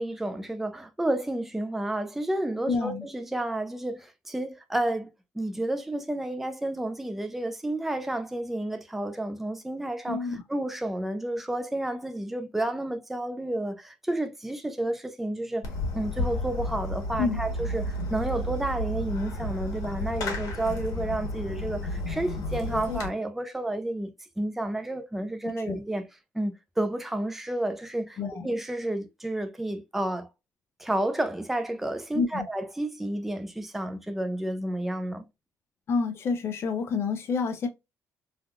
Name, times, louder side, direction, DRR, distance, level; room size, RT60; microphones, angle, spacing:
voice 1, 0.0-5.1 5.4-15.6 15.9-24.1 24.4-26.1 26.3-28.2 28.4-30.3 30.8-35.3, right 1 dB, 5° right, 0.3 m, -31 dB
voice 2, 2.7-3.1 10.1-10.4 17.2-17.4 25.6-25.8 28.2-28.5 32.1-32.5 35.9-37.7, left 5 dB, 45° left, 0.5 m, -28 dB
Fireworks, 15.6-23.1, left 1 dB, 85° left, 1.1 m, -32 dB
3.4 x 2.3 x 2.3 m
cardioid pair, 165°, 6 cm